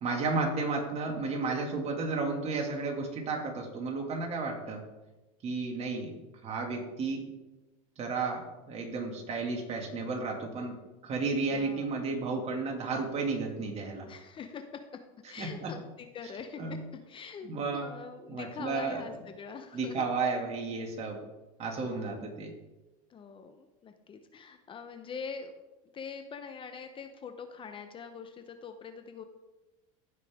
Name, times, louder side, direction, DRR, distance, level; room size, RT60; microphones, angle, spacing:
voice 1, 0.0-4.8 5.4-6.2 6.4-7.3 8.0-10.8 11.0-14.1 15.4-15.7 16.6-16.8 17.4-17.9 18.3-19.0 19.7-21.2 21.6-22.5, right 4 dB, 35° right, 2 dB, 2.3 m, -33 dB
voice 2, 11.5-12.0 14.1-20.0 21.8-22.3 23.1-25.5 25.9-29.2, left 5 dB, 30° left, 7 dB, 0.8 m, -44 dB
15.0 x 5.7 x 3.6 m, 1.1 s
supercardioid pair, 110°, 18 cm